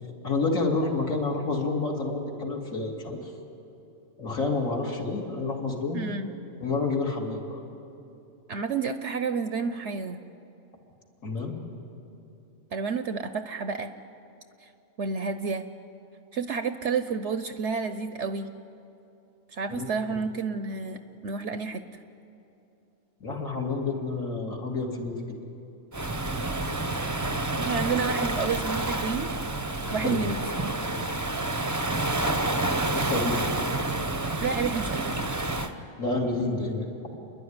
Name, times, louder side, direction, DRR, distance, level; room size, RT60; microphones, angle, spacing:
voice 1, 0.2-3.3 4.2-6.0 6.6-7.6 11.2-11.6 19.7-19.9 23.2-25.4 30.0-30.3 32.9-33.5 36.0-36.8, left 3 dB, 70° left, -1 dB, 3.0 m, -29 dB
voice 2, 5.9-6.4 8.5-10.2 12.7-13.9 14.6-14.7 15.0-15.6 16.3-18.5 19.5-21.8 27.6-29.3 29.9-30.4 34.4-35.2, right 5 dB, 60° right, 9 dB, 1.0 m, -30 dB
Waves surf, 25.9-35.7, right 2 dB, 15° right, 0.7 m, -29 dB
29.5 x 11.0 x 9.6 m, 2.8 s
omnidirectional pair, 1.5 m